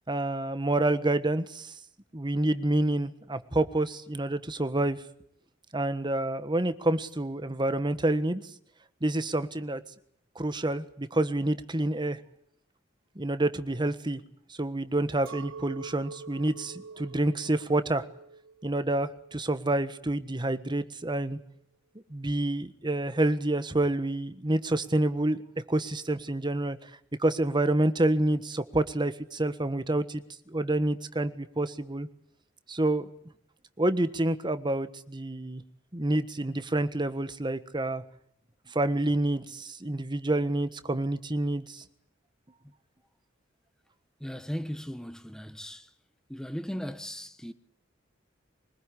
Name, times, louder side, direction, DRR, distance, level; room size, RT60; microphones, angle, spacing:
voice 1, 0.1-1.7 2.1-5.0 5.7-8.4 9.0-9.8 10.3-12.2 13.1-14.2 14.6-18.0 18.6-21.4 22.1-25.4 25.7-26.9 27.2-32.1 32.7-33.1 33.8-35.6 35.9-38.0 38.7-41.8, right 1 dB, 25° right, 1.4 m, -28 dB
Chink clink, 15.3-20.7, right 5 dB, 75° right, 1.0 m, -46 dB
voice 2, 44.2-45.9 46.3-47.5, equal, 5° left, 1.2 m, -37 dB
24.0 x 21.0 x 9.9 m
head